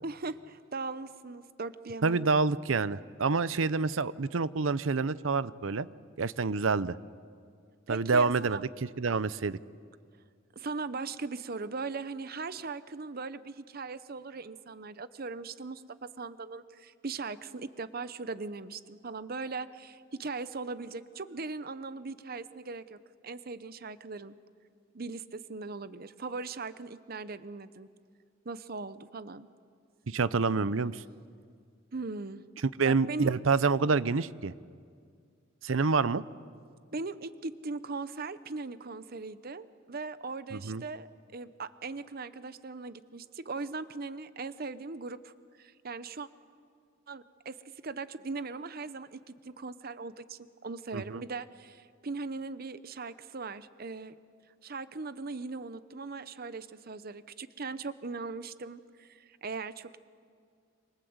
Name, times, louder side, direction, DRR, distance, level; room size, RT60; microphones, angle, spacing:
voice 1, 0.0-2.2 7.9-8.6 10.6-23.0 23.2-24.3 24.9-27.9 28.4-29.5 31.9-32.4 32.8-33.3 36.9-41.1 41.3-45.3 45.6-46.3 47.1-47.6 47.8-54.2 54.6-60.0, right 4 dB, 50° right, 14 dB, 0.8 m, -39 dB
voice 2, 2.0-5.9 6.2-7.0 7.9-9.6 30.1-31.0 32.8-34.5 35.6-36.2 40.5-40.8 50.9-51.2, right 4 dB, 85° right, 17 dB, 0.7 m, -27 dB
27.5 x 26.0 x 8.0 m, 2.1 s
head